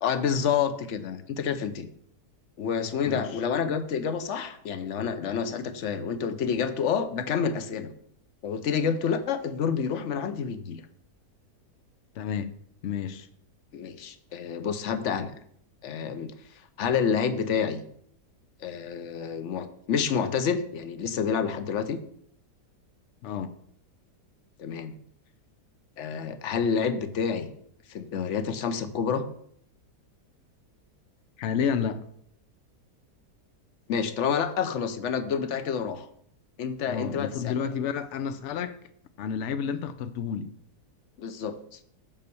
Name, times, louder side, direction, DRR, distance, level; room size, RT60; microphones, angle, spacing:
voice 1, 0.0-1.9 2.6-7.9 8.4-10.8 13.7-15.3 15.8-16.3 16.8-17.8 18.6-22.0 24.6-24.9 26.0-27.5 27.9-29.2 33.9-36.1 36.6-37.6 41.2-41.8, left 6 dB, 60° left, 10 dB, 0.8 m, -28 dB
voice 2, 12.2-12.5 12.8-13.3 23.2-23.5 31.4-32.0 36.9-38.8 39.2-40.5, left 7 dB, 85° left, 10 dB, 0.6 m, -30 dB
7.5 x 5.3 x 6.8 m, 0.66 s
omnidirectional pair, 1.9 m